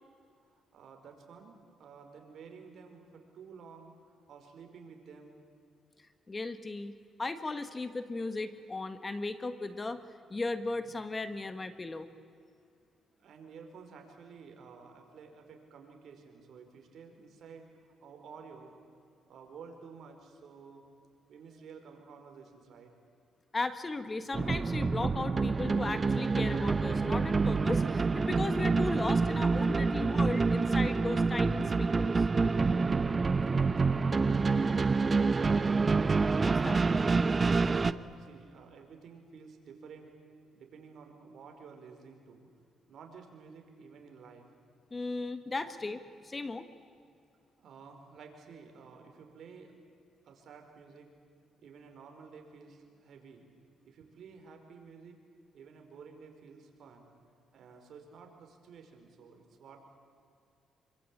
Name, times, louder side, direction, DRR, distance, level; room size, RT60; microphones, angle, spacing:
voice 1, 0.5-5.4 13.2-18.7 19.3-20.8 21.3-22.9 33.1-35.8 37.7-40.1 40.5-42.5 42.9-44.5 47.6-49.7 50.2-51.1 51.6-53.5 53.9-55.2 55.5-57.1 57.5-59.8, right 5 dB, 65° right, 4 dB, 5.0 m, -52 dB
voice 2, 6.3-10.0 10.3-12.1 23.5-32.3 36.4-36.9 44.9-46.7, left 3 dB, 25° left, 10 dB, 1.5 m, -36 dB
sound 1, 24.3-37.9, right 4 dB, 30° right, 0.8 m, -27 dB
27.0 x 24.5 x 8.7 m, 2.4 s
cardioid pair, 90°, 0 cm